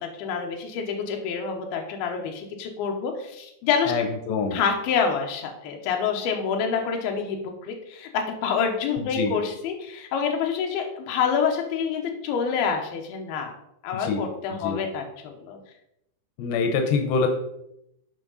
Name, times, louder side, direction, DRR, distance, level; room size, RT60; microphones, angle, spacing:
voice 1, 0.0-3.9 4.5-13.5 13.8-15.6, left 6 dB, 70° left, 2 dB, 2.8 m, -27 dB
voice 2, 3.9-4.6 9.0-9.4 13.9-14.2 14.5-14.8 16.4-17.3, left 5 dB, 90° left, 5 dB, 3.0 m, -25 dB
9.8 x 5.2 x 4.0 m, 0.80 s
omnidirectional pair, 4.9 m